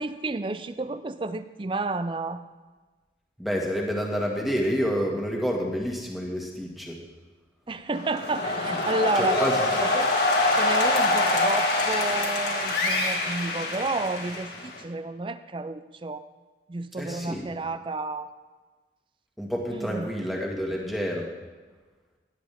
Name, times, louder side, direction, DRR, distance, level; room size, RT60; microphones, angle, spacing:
voice 1, 0.0-2.4 7.7-9.4 9.8-10.1 10.5-16.2 16.7-18.3 19.7-20.1, right 2 dB, 30° right, 12 dB, 0.4 m, -31 dB
voice 2, 3.4-7.0 9.1-9.6 17.0-17.5 19.4-21.3, equal, ahead, -1 dB, 1.7 m, -28 dB
sound 1, 7.9-14.8, left 2 dB, 70° left, 1.9 m, -25 dB
17.0 x 10.0 x 3.5 m, 1.3 s
head